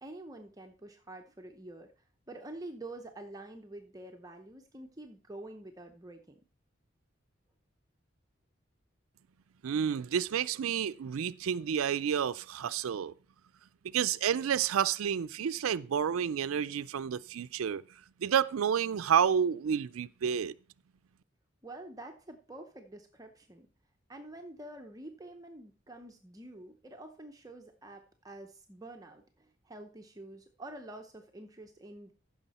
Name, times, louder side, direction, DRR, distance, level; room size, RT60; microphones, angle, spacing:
voice 1, 0.0-6.4 21.6-23.7 24.1-32.1, right 1 dB, 15° right, 0.7 m, -47 dB
voice 2, 9.6-13.1 13.8-17.8 18.2-20.5, right 8 dB, 85° right, 0.4 m, -30 dB
14.5 x 6.3 x 4.2 m
head